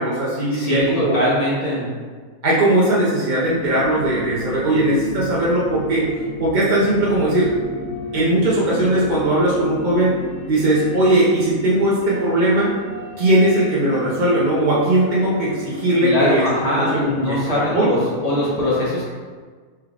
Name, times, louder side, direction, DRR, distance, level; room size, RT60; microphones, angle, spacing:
voice 1, 0.0-1.2 2.4-6.1 6.4-7.6 8.1-10.2 10.5-12.7 13.2-17.9, right 1 dB, 65° right, -6 dB, 0.4 m, -19 dB
voice 2, 0.5-1.9 16.0-18.0 18.2-19.1, left 1 dB, 30° left, -8 dB, 0.9 m, -21 dB
sound 1, 3.4-18.5, left 1 dB, 65° left, 0.8 m, -35 dB
4.5 x 3.3 x 2.4 m, 1.5 s
omnidirectional pair, 1.6 m